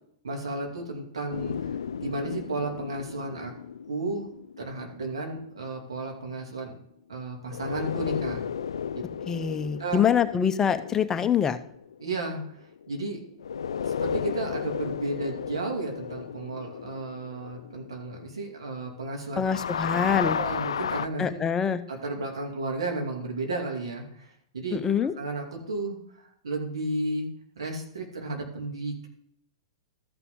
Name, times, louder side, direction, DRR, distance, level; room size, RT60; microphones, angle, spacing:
voice 1, 0.2-3.5 3.9-4.3 4.6-6.7 7.1-8.4 9.8-10.0 12.0-12.6 12.9-13.2 13.8-19.4 20.2-21.4 21.9-24.8 25.2-27.3 27.6-29.1, right 2 dB, 85° right, 2 dB, 2.5 m, -33 dB
sound 1, 1.3-5.8 7.5-13.0 13.4-19.1 19.3-21.1, left 7 dB, 80° left, 0.3 m, -34 dB
voice 2, 9.3-11.6 19.4-20.4 21.2-21.8 24.7-25.1, left 7 dB, 20° left, 10 dB, 0.7 m, -25 dB
14.0 x 5.8 x 3.8 m, 0.69 s
hypercardioid pair, 115°, 3 cm